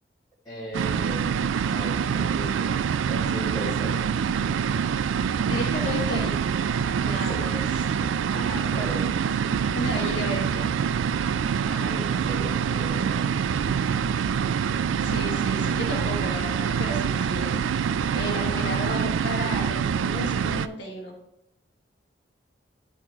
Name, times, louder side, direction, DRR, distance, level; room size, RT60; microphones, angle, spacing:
voice 1, 0.5-4.0 7.3-7.5 8.3-9.1 11.7-13.3 18.5-18.9, right 1 dB, 20° left, -8 dB, 1.9 m, -37 dB
sound 1, 0.7-20.7, right 7 dB, 90° right, 0.3 m, -25 dB
voice 2, 5.4-6.4 7.0-7.7 9.7-10.7 15.0-17.6 18.1-21.1, left 1 dB, 70° left, -3 dB, 1.5 m, -33 dB
11.5 x 4.2 x 4.3 m, 0.81 s
head